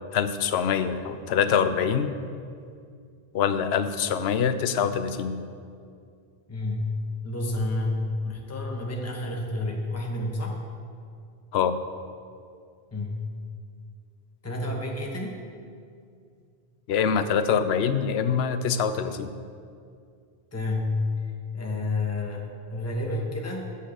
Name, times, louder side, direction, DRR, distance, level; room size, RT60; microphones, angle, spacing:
voice 1, 0.1-2.1 3.3-5.4 11.5-11.8 16.9-19.3, left 7 dB, 80° left, 11 dB, 0.8 m, -24 dB
voice 2, 6.5-6.9 7.2-10.6 12.9-13.2 14.4-15.4 20.5-21.0 21.5-23.8, left 2 dB, 15° left, 0 dB, 1.0 m, -30 dB
8.3 x 5.6 x 7.5 m, 2.3 s
omnidirectional pair, 1.1 m